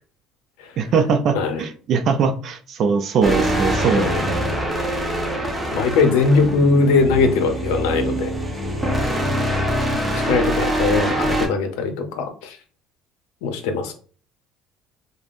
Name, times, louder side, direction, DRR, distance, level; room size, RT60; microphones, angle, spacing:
voice 1, 0.8-4.5 9.9-10.2, right 5 dB, 50° right, 6 dB, 0.3 m, -21 dB
voice 2, 1.3-1.6 3.9-4.2 5.7-8.3 10.2-12.6 13.4-13.9, left 4 dB, 85° left, 7 dB, 0.6 m, -20 dB
sound 1, 3.2-11.5, right 1 dB, 10° right, 0.7 m, -23 dB
3.4 x 2.0 x 2.4 m, 0.41 s
cardioid pair, 110°, 0 cm